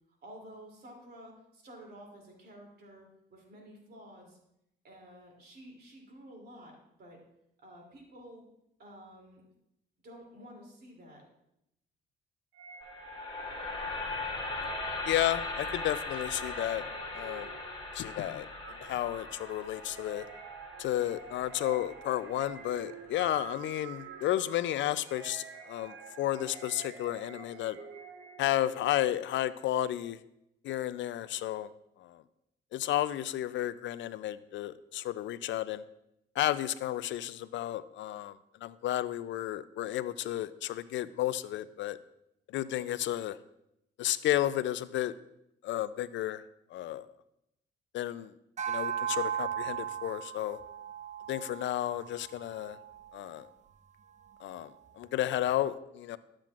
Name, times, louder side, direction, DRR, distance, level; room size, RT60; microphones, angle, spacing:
voice 1, 0.2-4.4 4.8-7.2 7.6-8.5 8.8-9.4 10.0-11.2, equal, 55° right, 0 dB, 2.8 m, -51 dB
sound 1, 12.5-28.8, right 7 dB, 70° right, 0.8 m, -48 dB
sound 2, 12.8-22.9, left 3 dB, 25° left, 1.9 m, -39 dB
voice 2, 15.1-16.8 17.1-17.5 17.9-18.5 18.8-20.3 20.8-27.8 28.4-30.2 30.6-31.7 32.0-32.2 32.7-35.8 36.4-42.0 42.5-43.4 44.0-45.1 45.6-46.4 46.7-47.1 47.9-48.3 48.7-50.6 51.3-52.8 53.1-53.5 54.4-56.2, left 13 dB, 70° left, 16 dB, 0.4 m, -32 dB
sound 3, 48.6-53.2, right 9 dB, 35° right, 0.6 m, -37 dB
12.0 x 7.5 x 2.4 m, 0.81 s
cardioid pair, 90°, 20 cm